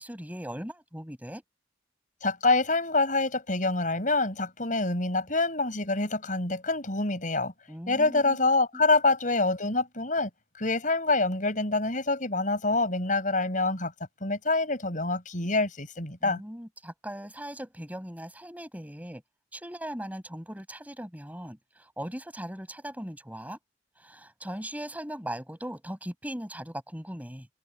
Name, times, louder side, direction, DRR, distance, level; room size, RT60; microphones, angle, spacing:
voice 1, 0.0-1.4 7.7-8.4 8.7-8.8 16.2-19.2 19.5-23.6 24.0-27.5, equal, 10° right, 6.6 m, -39 dB
voice 2, 2.2-7.5 7.9-10.3 10.6-13.9 14.2-16.4, left 3 dB, 45° left, 6.5 m, -26 dB
head